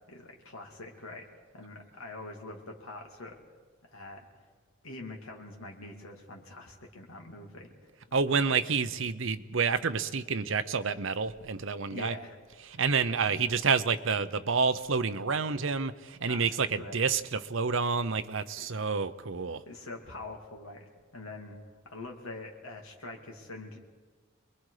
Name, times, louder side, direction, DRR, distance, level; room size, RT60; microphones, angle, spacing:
voice 1, 0.1-1.3 1.5-3.4 3.9-4.3 4.8-7.7 11.9-12.4 12.7-12.8 16.2-17.1 17.8-17.9 18.6-18.7 19.7-21.6 21.8-23.8, left 2 dB, 85° left, 1 dB, 2.8 m, -44 dB
voice 2, 8.1-12.2 12.7-19.6, right 5 dB, 60° right, 11 dB, 0.8 m, -29 dB
27.0 x 21.5 x 5.0 m, 1.5 s
head